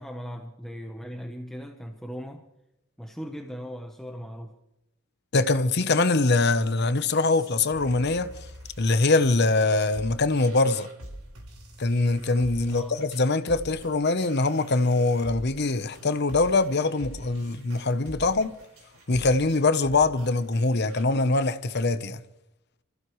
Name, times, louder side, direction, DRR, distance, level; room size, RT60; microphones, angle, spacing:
voice 1, 0.0-2.4 3.0-4.5 12.7-12.9, equal, ahead, 0.9 m, -38 dB
voice 2, 5.3-8.3 8.8-10.9 11.8-18.5 19.1-22.2, left 3 dB, 50° left, 0.9 m, -23 dB
sound 1, 6.9-21.0, right 1 dB, 80° right, 4.7 m, -46 dB
29.0 x 15.5 x 3.2 m
head